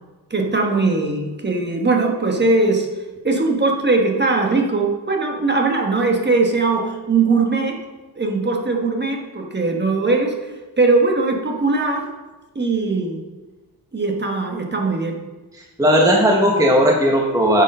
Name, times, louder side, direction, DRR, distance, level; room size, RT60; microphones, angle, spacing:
voice 1, 0.3-2.9 3.2-7.8 8.2-10.3 10.8-12.1 12.5-13.2 13.9-15.2, right 3 dB, 25° right, 1 dB, 1.3 m, -20 dB
voice 2, 15.5-17.6, equal, 10° right, 0 dB, 1.0 m, -16 dB
9.7 x 6.7 x 5.4 m, 1.2 s
wide cardioid pair, 140°, 42 cm